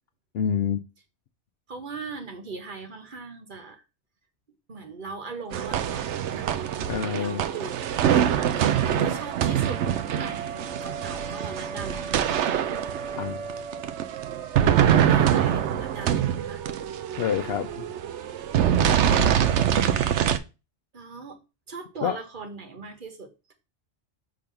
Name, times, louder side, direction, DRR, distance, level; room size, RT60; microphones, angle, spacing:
voice 1, 0.3-0.8 6.9-7.4 13.2-13.4 17.2-17.8 22.0-22.2, left 8 dB, 65° left, 0.8 m, -27 dB
voice 2, 1.7-3.8 4.7-6.8 7.1-12.4 15.0-16.6 20.9-21.4 21.7-23.5, right 4 dB, 45° right, 1.3 m, -40 dB
sound 1, 5.5-20.4, right 9 dB, 80° right, 0.9 m, -24 dB
5.2 x 3.8 x 5.8 m
omnidirectional pair, 1.2 m